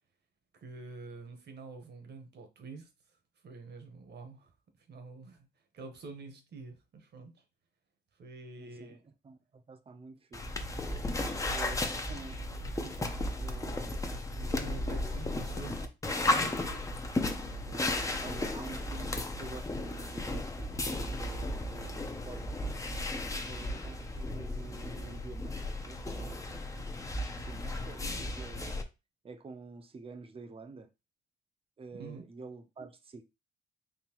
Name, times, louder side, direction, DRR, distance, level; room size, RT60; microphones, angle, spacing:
voice 1, 0.5-2.9 3.4-5.5 5.7-7.4 8.1-9.0 14.5-15.9 16.4-16.7 31.9-32.2, right 3 dB, 60° right, 1.1 m, -47 dB
voice 2, 8.6-9.0 9.2-10.5 11.5-14.0 14.3-15.4 16.1-16.8 17.7-20.8 21.2-22.8 23.4-26.4 27.2-28.8 29.2-30.9 31.8-33.2, right 4 dB, 30° right, 0.6 m, -49 dB
sound 1, 10.3-28.8, left 2 dB, 15° left, 0.6 m, -35 dB
3.9 x 2.9 x 2.9 m
cardioid pair, 90°, 20 cm